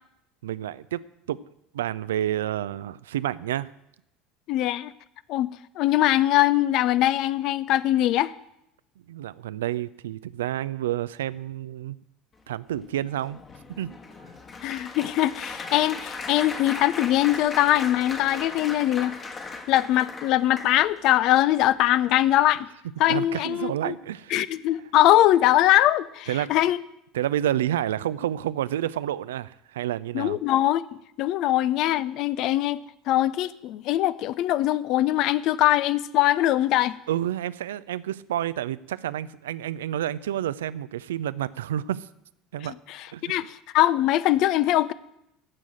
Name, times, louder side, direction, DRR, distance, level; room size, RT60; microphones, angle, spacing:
voice 1, 0.4-1.0 1.3-1.4 1.7-3.7 9.1-12.0 12.5-13.4 13.7-14.0 23.1-24.5 26.3-26.5 27.1-30.4 37.1-42.1 42.5-42.7 43.1-43.5, right 12 dB, 70° right, 0.4 m, -29 dB
voice 2, 4.5-4.9 5.3-8.3 14.6-19.2 19.7-22.7 23.0-23.9 24.3-26.8 30.1-30.8 31.2-37.0 42.9-43.0 43.2-44.9, left 14 dB, 55° left, 0.5 m, -22 dB
Applause, 12.8-21.1 21.7-22.0 22.2-22.4, left 4 dB, 30° left, 1.6 m, -38 dB
15.0 x 6.2 x 9.0 m
figure-of-eight pair, 65°, 0 cm